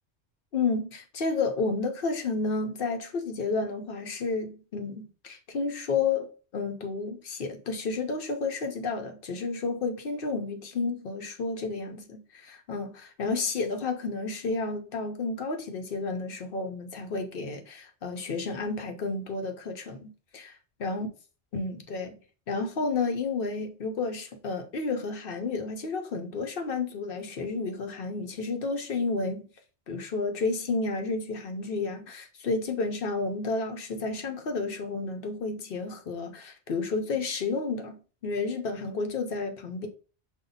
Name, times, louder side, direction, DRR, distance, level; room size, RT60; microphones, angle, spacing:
voice 1, 0.5-21.1 21.5-22.2 22.5-29.4 29.9-39.9, left 4 dB, 60° left, 0.8 m, -31 dB
5.4 x 2.2 x 3.9 m
omnidirectional pair, 1.2 m